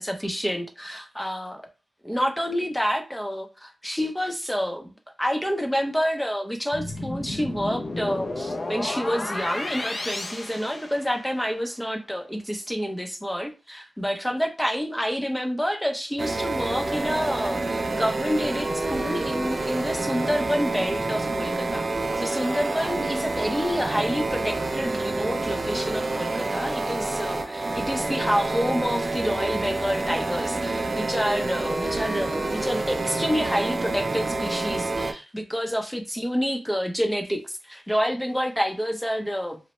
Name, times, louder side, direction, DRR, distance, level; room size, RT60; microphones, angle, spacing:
voice 1, 0.0-1.6 2.0-4.9 5.2-21.9 22.2-39.6, equal, 5° left, 4 dB, 0.6 m, -28 dB
sound 1, 6.7-11.5, left 2 dB, 50° left, 0.5 m, -32 dB
sound 2, 16.2-35.1, right 2 dB, 50° right, 0.4 m, -28 dB
2.9 x 2.1 x 3.0 m, 0.30 s
wide cardioid pair, 80°, 0 cm